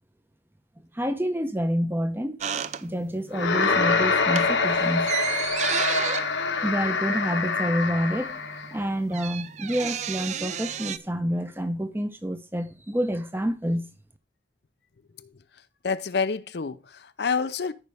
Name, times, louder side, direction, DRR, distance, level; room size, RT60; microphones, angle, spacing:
voice 1, 0.9-2.5 2.8-5.1 6.6-8.4 8.7-13.9, equal, 10° right, 0.8 m, -28 dB
sound 1, 2.4-3.3 3.6-3.9 4.2-7.7 8.0-8.1 8.3-11.0, right 8 dB, 40° right, 0.4 m, -32 dB
sound 2, 3.3-8.7, left 4 dB, 80° left, 1.2 m, -25 dB
voice 2, 15.8-17.7, left 5 dB, 65° left, 0.5 m, -28 dB
14.0 x 5.2 x 3.4 m
head